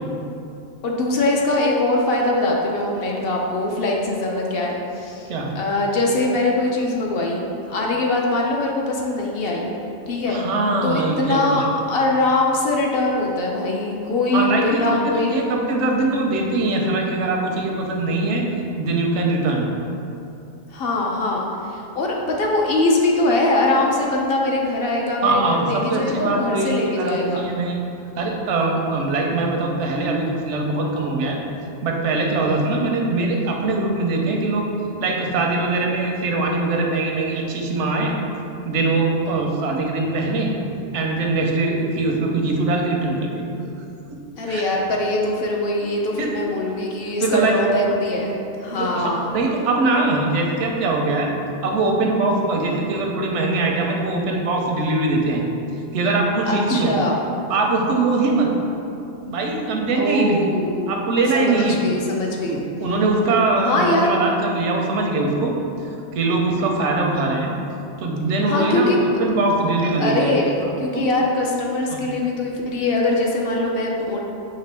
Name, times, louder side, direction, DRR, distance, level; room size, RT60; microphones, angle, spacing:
voice 1, 0.8-5.3 5.5-9.7 10.1-10.4 10.8-15.4 20.7-27.4 44.4-49.3 56.5-57.2 59.9-60.9 61.3-62.6 63.6-64.2 68.5-69.0 70.0-74.2, left 2 dB, 60° left, -1 dB, 0.7 m, -22 dB
voice 2, 10.3-11.7 14.3-14.9 15.3-18.5 18.8-19.6 25.2-27.7 28.2-31.4 31.8-34.7 35.0-38.1 38.6-40.5 40.9-43.5 44.1-44.2 44.5-44.6 46.2-46.3 47.2-47.6 48.8-51.3 51.6-55.4 55.9-56.9 57.5-58.5 59.3-60.5 60.9-61.8 62.5-65.5 65.8-67.5 68.0-70.3 70.9-71.1 71.9-72.0, right 2 dB, 85° right, 0 dB, 0.9 m, -22 dB
5.8 x 2.7 x 3.3 m, 2.7 s
omnidirectional pair, 1.2 m